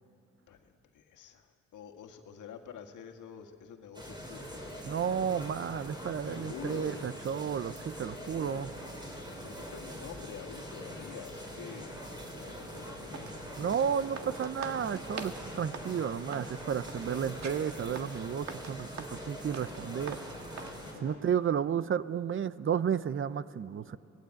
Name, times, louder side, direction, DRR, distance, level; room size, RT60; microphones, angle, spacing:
voice 1, 1.7-4.8 6.3-7.0 8.3-8.6 9.4-11.9 12.4-13.5 13.9-14.0 14.2-14.4 20.9-21.2, left 7 dB, 80° left, 5 dB, 1.9 m, -47 dB
sound 1, 3.9-20.9, equal, 15° right, 5.4 m, -43 dB
voice 2, 4.8-8.7 13.6-20.2 21.0-24.0, right 8 dB, 45° right, 16 dB, 0.7 m, -32 dB
sound 2, 12.7-20.8, right 6 dB, 60° right, 2.1 m, -45 dB
30.0 x 19.0 x 8.9 m, 2.8 s
cardioid pair, 90°, 30 cm